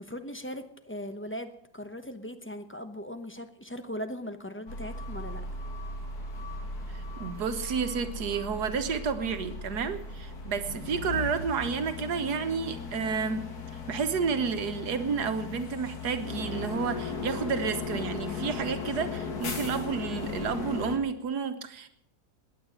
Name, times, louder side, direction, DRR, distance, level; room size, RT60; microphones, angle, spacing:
voice 1, 0.0-5.4, equal, 10° left, 8 dB, 0.7 m, -39 dB
sound 1, 4.7-21.0, left 4 dB, 70° left, 2.3 m, -37 dB
voice 2, 6.9-13.5 13.9-21.9, right 5 dB, 80° right, 9 dB, 1.7 m, -31 dB
20.0 x 9.4 x 6.5 m, 0.72 s
omnidirectional pair, 1.7 m